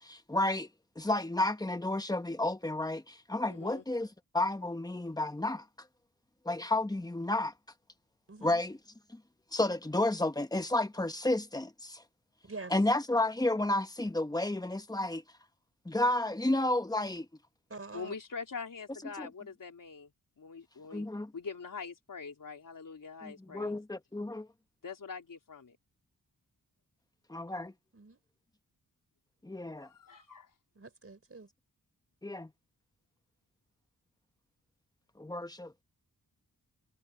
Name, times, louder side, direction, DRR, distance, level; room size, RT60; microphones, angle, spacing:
voice 1, 0.0-0.7 1.0-4.1 4.3-5.6 6.4-7.5 8.4-8.8 9.1-9.2 9.5-12.0 12.7-15.2 15.8-17.3 19.2-19.3 20.9-21.3 23.2-24.5 27.3-27.7 29.4-29.9 32.2-32.5 35.2-35.8, left 2 dB, 10° left, 1.2 m, -31 dB
voice 2, 3.5-3.9 17.9-20.1 20.4-21.1 21.3-23.7 24.8-25.8 29.8-30.5, left 5 dB, 60° left, 3.7 m, -44 dB
voice 3, 8.3-8.6 12.4-12.7 17.7-18.1 27.9-28.2 30.7-31.5, right 3 dB, 40° right, 4.3 m, -45 dB
wide cardioid pair, 100°, 37 cm